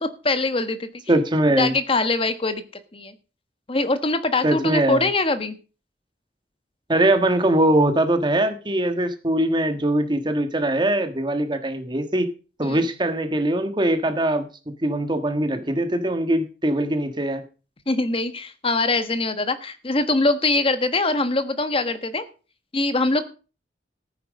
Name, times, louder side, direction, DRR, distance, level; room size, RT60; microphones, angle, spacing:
voice 1, 0.0-0.9 1.6-2.6 2.9-3.1 3.7-5.6 12.6-12.8 17.9-22.2 22.7-23.2, left 2 dB, 30° left, 10 dB, 1.3 m, -23 dB
voice 2, 1.1-1.7 4.4-5.1 6.9-12.3 12.6-17.4, right 1 dB, 25° right, 8 dB, 1.5 m, -22 dB
14.5 x 9.0 x 5.2 m, 0.35 s
head